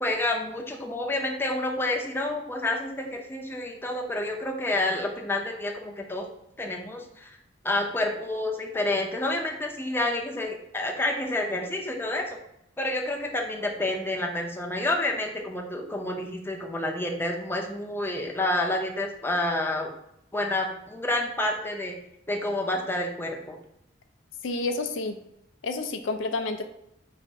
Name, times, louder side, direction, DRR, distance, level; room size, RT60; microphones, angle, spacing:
voice 1, 0.0-6.3 6.6-7.3 7.6-12.4 12.8-19.9 20.3-22.0 22.3-23.6, left 1 dB, 10° left, 1 dB, 0.5 m, -29 dB
voice 2, 24.4-25.2 25.6-26.6, left 3 dB, 80° left, 7 dB, 0.4 m, -29 dB
4.0 x 2.5 x 4.6 m, 0.80 s
head